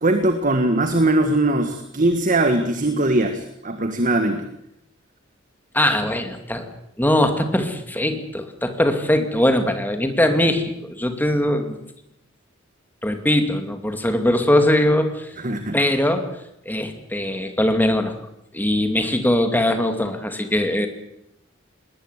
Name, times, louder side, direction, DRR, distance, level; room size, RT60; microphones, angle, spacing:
voice 1, 0.0-4.5 15.4-15.8, right 2 dB, 40° right, 7 dB, 1.6 m, -20 dB
voice 2, 5.7-6.7 7.0-11.8 13.0-15.3 15.7-16.3 16.7-18.1 18.5-20.9, left 1 dB, 10° left, 6 dB, 2.5 m, -21 dB
20.5 x 19.0 x 8.2 m, 0.80 s
head